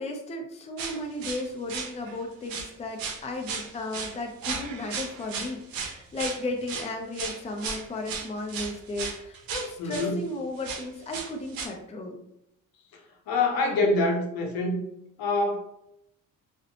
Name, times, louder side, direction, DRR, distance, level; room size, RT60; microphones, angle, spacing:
voice 1, 0.0-12.2, left 2 dB, 20° left, 2 dB, 0.4 m, -35 dB
sound 1, 0.8-2.2 2.4-2.7 3.0-10.1 10.6-11.7, right 5 dB, 80° right, 0.6 m, -35 dB
voice 2, 9.8-10.2 13.3-14.8 15.2-15.6, left 2 dB, 85° left, 2 dB, 0.7 m, -25 dB
2.6 x 2.1 x 2.8 m, 0.79 s
cardioid pair, 95°, 35 cm